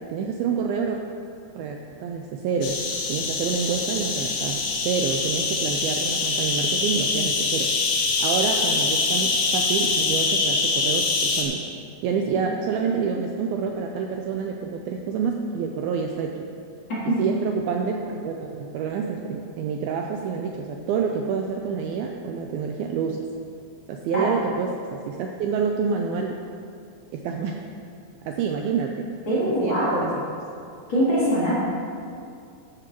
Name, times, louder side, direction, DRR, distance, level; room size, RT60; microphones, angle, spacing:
voice 1, 0.1-1.0 1.6-2.8 3.1-7.7 8.2-11.7 12.0-16.5 17.2-23.3 23.9-26.4 27.1-27.6 28.3-29.1 29.6-30.2, right 6 dB, 85° right, 2 dB, 2.2 m, -28 dB
sound 1, 2.6-11.4, left 4 dB, 80° left, 3.3 m, -24 dB
voice 2, 29.3-30.1 30.9-31.5, equal, 30° left, -10 dB, 3.3 m, -22 dB
13.0 x 11.5 x 3.0 m, 2.4 s
omnidirectional pair, 4.9 m